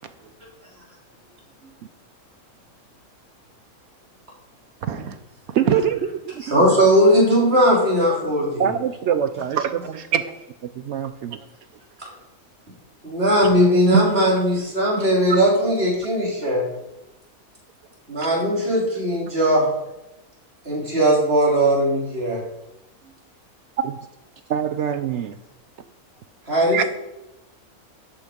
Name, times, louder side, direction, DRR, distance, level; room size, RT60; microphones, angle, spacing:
voice 1, 4.8-5.2 5.5-5.7 9.6-10.4 13.9-14.4 15.0-15.5 23.8-23.9 26.7-26.9, right 7 dB, 80° right, 10 dB, 1.4 m, -24 dB
voice 2, 5.6-6.0 6.3-6.4 8.6-9.6 10.8-11.4 24.5-25.4, right 9 dB, 65° right, 10 dB, 0.8 m, -23 dB
voice 3, 6.4-8.7 12.0-12.1 13.0-16.6 18.1-19.7 20.7-22.4 26.5-26.9, equal, 45° right, -3 dB, 3.8 m, -19 dB
12.5 x 8.1 x 5.1 m, 0.92 s
omnidirectional pair, 1.5 m